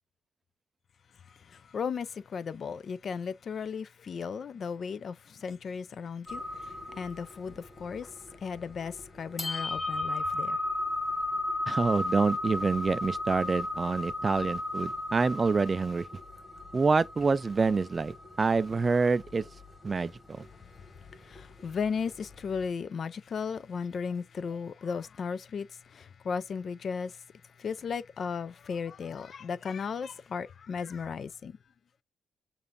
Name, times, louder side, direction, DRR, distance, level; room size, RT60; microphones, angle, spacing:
voice 1, 1.3-8.2 8.4-10.6 20.7-20.9 21.1-27.2 27.6-31.6, left 6 dB, 50° left, 0.3 m, -36 dB
sound 1, 6.3-22.7, left 2 dB, 20° left, 1.6 m, -35 dB
voice 2, 11.7-16.1 16.7-19.5 19.8-20.5, right 4 dB, 30° right, 0.3 m, -27 dB
6.8 x 2.5 x 2.5 m
cardioid pair, 90°, 0 cm